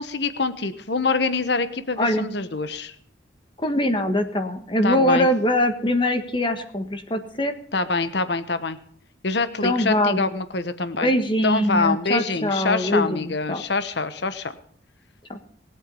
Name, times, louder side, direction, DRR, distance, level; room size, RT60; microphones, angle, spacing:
voice 1, 0.0-2.9 4.8-5.3 7.7-8.8 9.2-11.1 11.4-14.5, left 3 dB, 60° left, 12 dB, 1.2 m, -25 dB
voice 2, 3.6-7.6 9.6-10.2 11.0-13.6 15.3-15.4, left 1 dB, 25° left, 7 dB, 1.5 m, -22 dB
20.5 x 8.3 x 5.4 m, 0.63 s
head